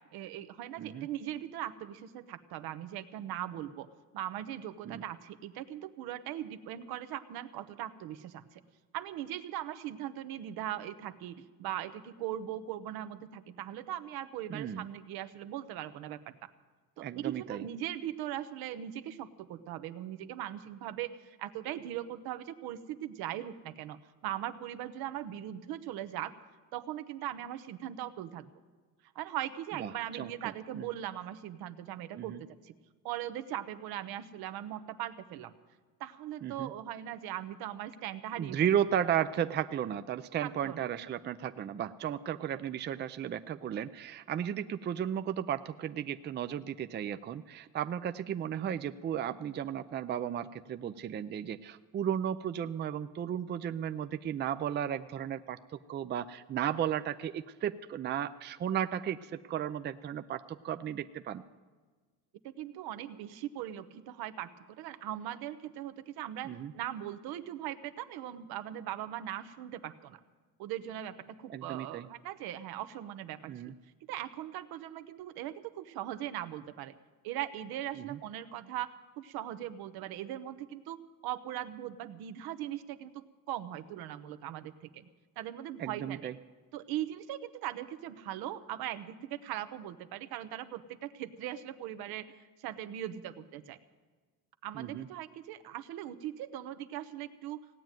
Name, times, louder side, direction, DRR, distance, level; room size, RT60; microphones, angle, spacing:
voice 1, 0.1-3.9 4.1-8.6 8.9-16.4 17.0-24.0 24.2-26.3 26.7-28.5 29.1-32.7 33.0-35.5 36.0-38.6 40.4-40.9 62.4-70.2 70.6-73.5 74.1-76.9 77.2-78.9 79.2-85.1 85.4-86.3 86.7-93.8 94.6-97.6, right 12 dB, 75° right, 12 dB, 1.0 m, -40 dB
voice 2, 14.5-14.8 17.0-17.6 29.8-30.8 32.2-32.4 36.4-36.7 38.4-61.4 66.4-66.7 71.5-72.1 73.5-73.7 78.0-78.2 85.8-86.3 94.7-95.1, right 9 dB, 30° right, 10 dB, 0.5 m, -34 dB
17.0 x 9.2 x 9.0 m, 1.4 s
cardioid pair, 120°, 37 cm